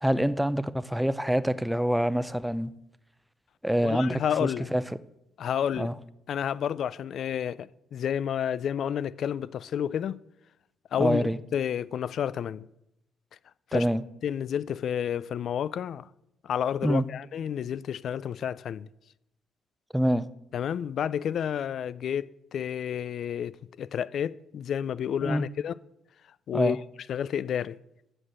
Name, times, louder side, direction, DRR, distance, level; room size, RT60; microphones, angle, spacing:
voice 1, 0.0-2.7 3.6-4.8 5.8-5.9 11.0-11.4 13.7-14.0 16.8-17.0 19.9-20.3 25.2-25.4 26.5-26.8, equal, 5° right, 0.5 m, -26 dB
voice 2, 3.8-4.7 5.4-5.9 6.3-10.2 10.9-12.7 13.7-13.9 14.2-16.1 16.4-18.9 20.5-25.7 26.5-26.8 27.1-27.8, left 9 dB, 60° left, 0.3 m, -30 dB
7.6 x 6.4 x 7.6 m
cardioid pair, 85°, 0 cm